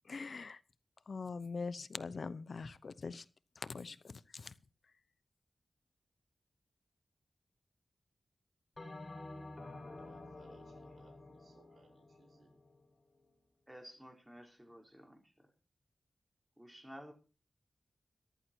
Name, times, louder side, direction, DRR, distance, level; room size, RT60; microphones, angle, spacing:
voice 1, 0.1-0.6 1.1-3.2 3.6-4.5, left 4 dB, 65° left, 0.8 m, -43 dB
Bell, 8.8-13.4, left 2 dB, 30° left, 5.7 m, -51 dB
voice 2, 10.0-12.5, right 4 dB, 80° right, 6.2 m, -67 dB
voice 3, 13.7-15.5 16.6-17.1, equal, 10° right, 4.2 m, -53 dB
14.5 x 12.5 x 4.5 m
wide cardioid pair, 90°, 0 cm